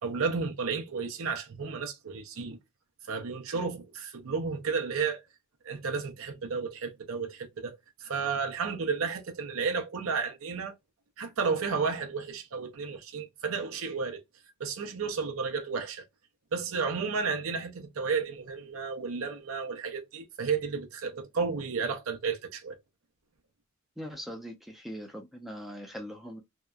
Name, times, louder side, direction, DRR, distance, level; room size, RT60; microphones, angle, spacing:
voice 1, 0.0-2.6 3.1-5.2 5.6-10.7 11.2-14.2 14.6-16.0 16.5-22.8, right 5 dB, 85° right, 0.6 m, -32 dB
voice 2, 24.0-26.4, equal, ahead, 0.5 m, -41 dB
2.8 x 2.2 x 2.3 m
head